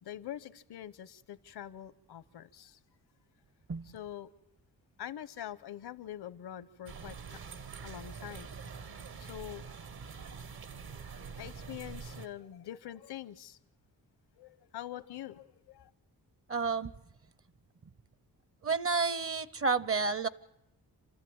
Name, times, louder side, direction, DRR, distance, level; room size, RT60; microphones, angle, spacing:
voice 1, 0.0-2.8 3.9-4.3 5.0-7.4 7.8-8.5 9.2-9.6 11.4-13.6 14.4-15.9, left 11 dB, 85° left, 1.0 m, -44 dB
sound 1, 6.9-12.3, right 5 dB, 70° right, 1.5 m, -45 dB
voice 2, 16.5-16.9 18.6-20.3, right 4 dB, 35° right, 0.7 m, -30 dB
28.5 x 13.5 x 8.7 m
cardioid pair, 100°, 38 cm